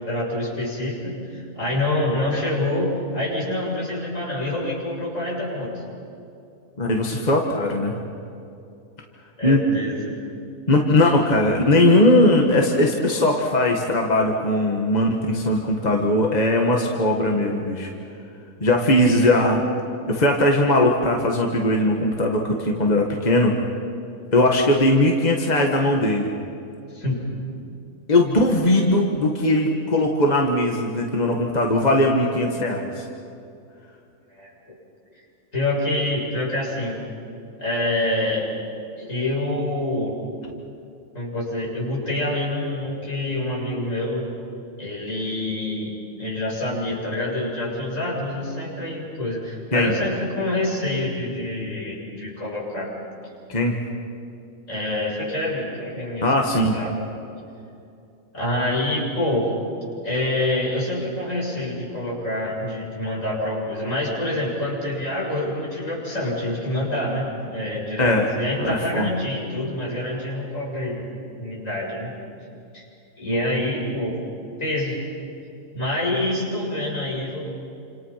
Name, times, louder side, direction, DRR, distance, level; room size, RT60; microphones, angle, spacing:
voice 1, 0.0-5.8 9.4-10.0 19.2-19.4 26.9-27.2 34.3-34.5 35.5-37.0 37.6-38.5 39.0-40.2 41.1-44.3 44.8-52.9 54.7-56.2 56.5-57.0 58.3-59.5 60.0-71.1 71.4-72.1 72.7-72.8 73.2-74.2 74.6-75.0 75.7-77.4, left 1 dB, 65° left, -4 dB, 7.3 m, -26 dB
voice 2, 6.8-8.0 9.4-9.8 10.7-17.9 18.6-19.6 20.1-23.6 24.3-26.3 28.1-33.0 49.7-49.9 53.5-53.8 56.2-56.8 68.0-68.3 68.6-69.1, left 1 dB, 30° left, 1 dB, 1.9 m, -19 dB
29.5 x 27.0 x 5.9 m, 2.6 s
omnidirectional pair, 1.4 m